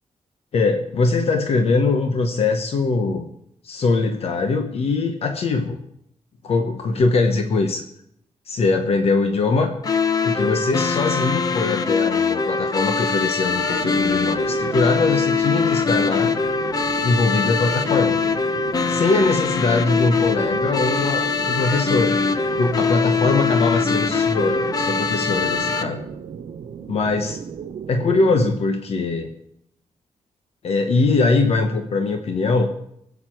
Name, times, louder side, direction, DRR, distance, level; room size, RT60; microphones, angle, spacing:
voice 1, 0.5-3.3 3.6-5.8 6.4-7.8 8.5-9.8 10.2-16.4 17.0-18.2 18.9-22.2 22.5-26.0 26.9-27.4 27.9-29.3 30.6-32.7, left 3 dB, 55° left, 6 dB, 1.0 m, -21 dB
sound 1, 9.8-25.8, left 5 dB, 30° left, 0.7 m, -22 dB
sound 2, 13.5-28.5, right 7 dB, 70° right, 0.8 m, -35 dB
21.5 x 8.3 x 4.6 m, 0.76 s
wide cardioid pair, 170°, 12 cm